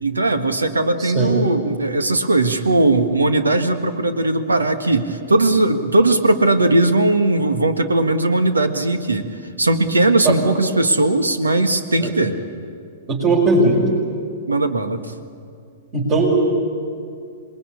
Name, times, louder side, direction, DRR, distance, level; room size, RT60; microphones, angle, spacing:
voice 1, 0.0-9.3 9.6-12.4 14.5-15.0, right 2 dB, 80° right, 8 dB, 1.7 m, -18 dB
voice 2, 1.0-1.3 10.2-10.3 12.0-12.1 13.1-13.8 15.9-16.3, right 2 dB, 35° right, -5 dB, 5.6 m, -18 dB
27.0 x 21.5 x 8.6 m, 2.3 s
figure-of-eight pair, 105°, 0 cm